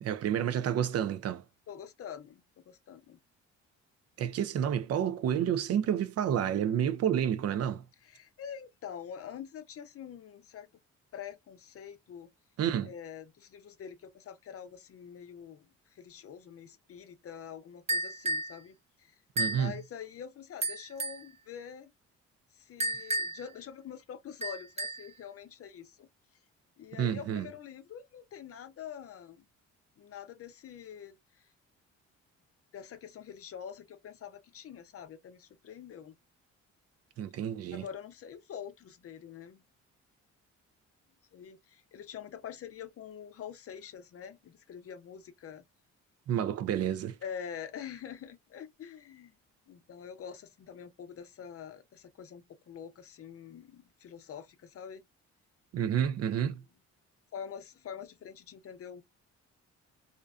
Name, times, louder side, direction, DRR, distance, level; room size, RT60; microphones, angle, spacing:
voice 1, 0.0-1.4 4.2-7.8 12.6-12.9 19.4-19.7 27.0-27.5 37.2-37.8 46.3-47.2 55.7-56.6, right 9 dB, 55° right, 0.4 m, -29 dB
voice 2, 1.7-3.2 7.2-7.4 8.0-10.7 11.1-12.3 12.8-21.9 22.5-26.1 26.8-29.4 30.0-31.5 32.7-36.1 37.7-39.6 41.3-45.6 47.2-49.3 49.7-55.1 57.3-59.0, left 8 dB, 50° left, 0.6 m, -45 dB
sound 1, 17.9-18.5 19.4-19.7 20.6-21.3 22.8-23.5 24.4-25.1, right 1 dB, 20° right, 0.8 m, -32 dB
2.5 x 2.2 x 2.3 m
cardioid pair, 90°, 30 cm